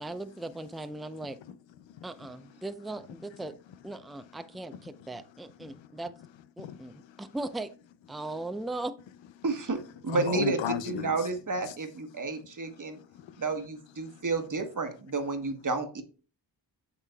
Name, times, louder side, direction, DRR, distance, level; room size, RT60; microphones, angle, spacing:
voice 1, 0.0-1.4 2.0-3.5 3.8-6.1 6.6-7.7 8.1-8.9, right 2 dB, ahead, 0.5 m, -38 dB
voice 2, 1.2-2.5 4.2-4.4 4.7-6.3 6.6-7.3 8.1-8.2 10.1-11.3 11.6-11.7 12.1-12.5 12.9-13.4 14.0-14.2, left 9 dB, 85° left, 0.6 m, -39 dB
voice 3, 9.4-13.0 13.4-16.0, right 4 dB, 45° right, 1.3 m, -31 dB
8.0 x 5.8 x 2.2 m
cardioid pair, 45°, 44 cm